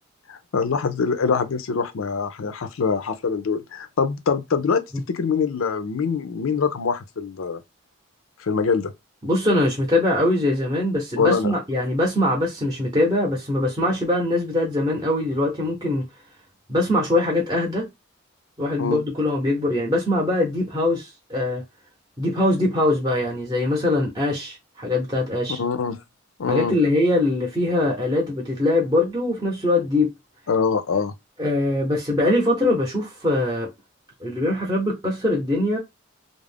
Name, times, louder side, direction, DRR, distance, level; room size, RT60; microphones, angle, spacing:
voice 1, 0.3-7.6 8.4-8.9 11.2-11.5 18.8-19.0 25.6-26.0 26.4-26.8 30.5-31.1, left 5 dB, 85° left, 0.5 m, -24 dB
voice 2, 9.2-16.0 16.7-17.9 18.6-21.6 22.2-25.6 26.5-30.1 31.4-33.7 34.2-35.8, left 1 dB, 20° right, 0.7 m, -22 dB
2.4 x 2.0 x 3.4 m
head